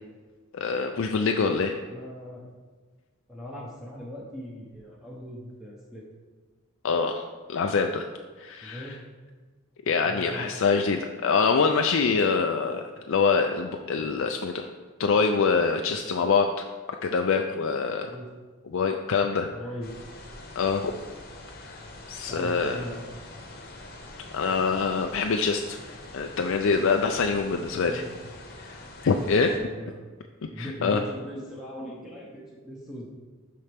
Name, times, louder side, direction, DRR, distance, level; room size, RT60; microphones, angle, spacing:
voice 1, 0.5-1.7 6.8-7.2 7.5-8.0 8.4-9.0 9.9-14.7 15.0-16.7 17.0-18.1 18.7-19.5 20.6-21.0 21.6-21.8 22.1-22.8 24.3-25.8 26.1-28.0 28.6-29.5 30.6-31.0, left 5 dB, 65° left, 4 dB, 0.4 m, -25 dB
voice 2, 1.8-2.5 3.3-6.0 8.6-9.0 10.0-10.5 12.8-12.9 18.0-18.3 19.5-19.9 22.3-23.0 27.6-28.2 29.2-29.9 30.5-33.1, equal, ahead, -5 dB, 1.0 m, -40 dB
sound 1, 19.8-29.6, left 2 dB, 45° left, 1.0 m, -44 dB
12.0 x 4.3 x 3.5 m, 1.4 s
head